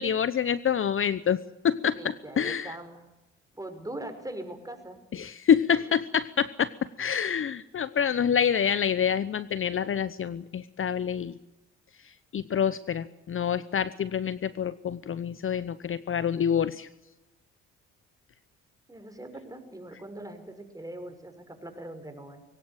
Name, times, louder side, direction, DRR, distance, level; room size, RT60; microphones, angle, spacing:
voice 1, 0.0-2.0 2.4-2.8 5.1-6.7 7.0-11.4 12.3-16.9, left 8 dB, 45° left, 16 dB, 0.9 m, -27 dB
voice 2, 1.9-3.0 3.5-5.0 5.7-5.9 18.9-22.4, right 1 dB, 10° right, 6 dB, 5.9 m, -41 dB
21.5 x 17.5 x 9.1 m, 0.97 s
supercardioid pair, 60°, 31 cm